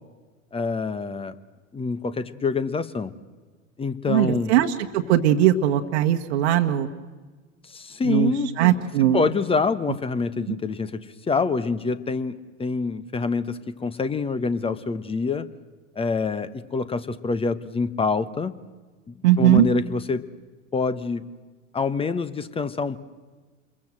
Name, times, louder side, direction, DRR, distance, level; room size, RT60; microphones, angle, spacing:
voice 1, 0.5-1.3 1.7-3.1 3.8-4.5 7.7-8.5 9.1-11.0 11.3-15.5 16.0-18.5 19.1-20.2 20.7-21.2 21.7-23.0, left 4 dB, 15° left, 15 dB, 1.2 m, -26 dB
voice 2, 4.1-6.9 8.0-8.3 8.6-9.2 10.5-10.6 19.2-19.7, right 12 dB, 55° right, 5 dB, 1.4 m, -19 dB
28.0 x 22.5 x 7.8 m, 1.4 s
figure-of-eight pair, 85°, 39 cm